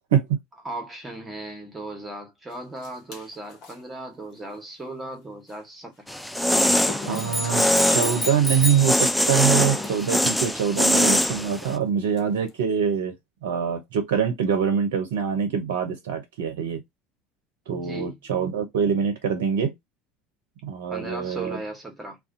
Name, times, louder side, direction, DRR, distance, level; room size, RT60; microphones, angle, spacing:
voice 1, 0.6-6.2 7.1-8.5 17.7-18.2 20.9-22.2, right 2 dB, 15° right, 1.1 m, -37 dB
sound 1, 2.5-3.8 5.5-5.6 6.4-8.5 9.6-10.5 11.4-11.6 12.1-12.6, left 3 dB, 55° left, 1.0 m, -38 dB
sound 2, 6.1-11.7, left 1 dB, 5° left, 0.3 m, -23 dB
sound 3, 7.1-9.0, left 1 dB, 30° left, 1.4 m, -30 dB
voice 2, 7.1-13.1 13.4-16.8 17.7-19.7 20.6-21.6, right 7 dB, 75° right, 0.5 m, -24 dB
2.3 x 2.2 x 2.5 m
hypercardioid pair, 70°, 0 cm